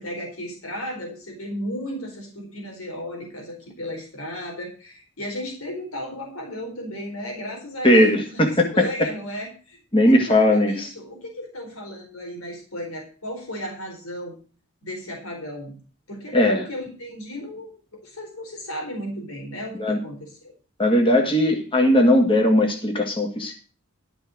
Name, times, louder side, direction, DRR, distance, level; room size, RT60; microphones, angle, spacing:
voice 1, 0.0-9.8 10.1-14.4 14.8-15.7 16.1-17.7 18.0-20.5, equal, 90° left, 1 dB, 4.2 m, -34 dB
voice 2, 7.8-8.9 9.9-10.9 16.3-16.6 19.8-20.0 20.8-23.5, left 1 dB, 25° left, 2 dB, 2.0 m, -18 dB
12.5 x 6.2 x 6.3 m, 0.38 s
head